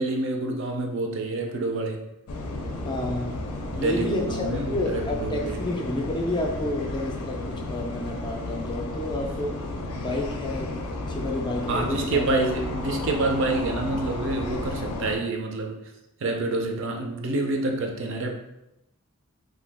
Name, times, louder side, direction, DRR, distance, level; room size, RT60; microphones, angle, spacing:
voice 1, 0.0-2.0 3.7-5.6 11.7-15.8 16.2-18.3, right 2 dB, 60° right, 3 dB, 0.4 m, -27 dB
sound 1, 2.3-15.2, left 2 dB, 85° left, 0.5 m, -33 dB
voice 2, 2.8-3.3 3.7-9.7 10.0-12.3, left 1 dB, 20° left, 1 dB, 0.3 m, -30 dB
2.7 x 2.3 x 3.4 m, 0.89 s
head